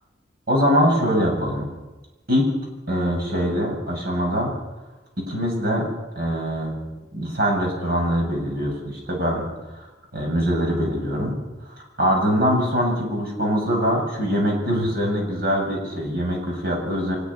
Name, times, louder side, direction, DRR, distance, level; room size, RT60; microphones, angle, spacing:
voice 1, 0.5-1.7 2.3-2.5 2.9-4.5 5.2-5.8 6.1-6.8 7.1-9.4 9.7-9.8 10.1-11.4 12.0-17.2, equal, 55° right, 0 dB, 7.9 m, -23 dB
24.5 x 20.5 x 5.9 m, 1.1 s
head